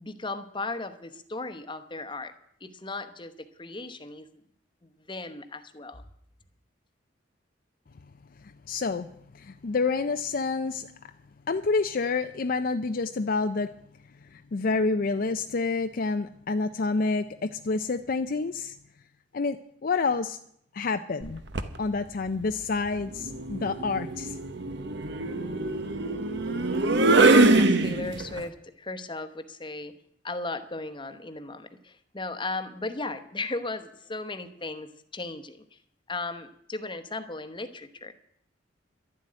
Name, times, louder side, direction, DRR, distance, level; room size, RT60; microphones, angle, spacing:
voice 1, 0.0-2.3 2.6-3.3 3.6-4.3 4.8-6.0 27.2-29.9 30.2-34.9 35.1-35.8 36.1-38.1, left 3 dB, 25° left, 1.0 m, -36 dB
voice 2, 8.4-11.1 11.5-13.7 14.2-18.8 19.3-20.4 20.7-21.4 21.8-24.4, left 4 dB, 50° left, 0.5 m, -28 dB
sound 1, 21.2-21.8 23.1-28.4, right 2 dB, 60° right, 1.1 m, -23 dB
12.0 x 7.6 x 9.8 m
head